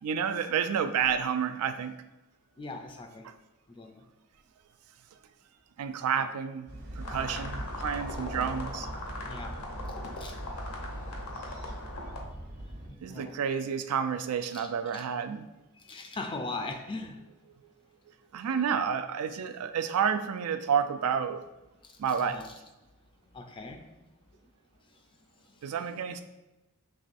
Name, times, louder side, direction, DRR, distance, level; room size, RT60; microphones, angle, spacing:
voice 1, 0.0-2.0 3.2-3.3 5.8-6.7 6.9-8.9 13.0-15.5 18.3-21.4 22.0-22.4 25.6-26.2, right 7 dB, 80° right, 9 dB, 0.4 m, -30 dB
voice 2, 2.6-3.3 3.7-4.0 6.1-6.3 7.3-7.5 9.3-9.6 10.2-10.4 12.5-13.5 14.5-15.1 15.8-17.2 21.8-22.5 23.3-24.1 25.5-25.6, left 3 dB, 25° left, 4 dB, 0.4 m, -41 dB
sound 1, 6.7-12.9, right 1 dB, 50° right, 0.8 m, -40 dB
sound 2, 7.0-12.2, left 2 dB, 85° left, 0.9 m, -40 dB
5.5 x 3.1 x 2.6 m, 1.0 s
head